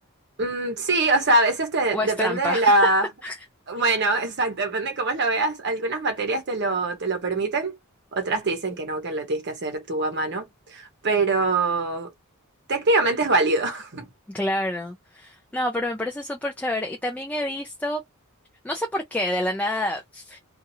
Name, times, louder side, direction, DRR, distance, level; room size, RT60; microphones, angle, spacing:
voice 1, 0.4-3.1 3.7-7.8 8.1-10.4 10.7-12.1 12.7-14.1, right 2 dB, 55° right, 0.8 m, -23 dB
voice 2, 1.9-2.7 3.2-3.4 3.8-3.9 14.3-18.0 18.6-20.4, left 1 dB, 5° left, 0.4 m, -28 dB
2.8 x 2.4 x 2.7 m
head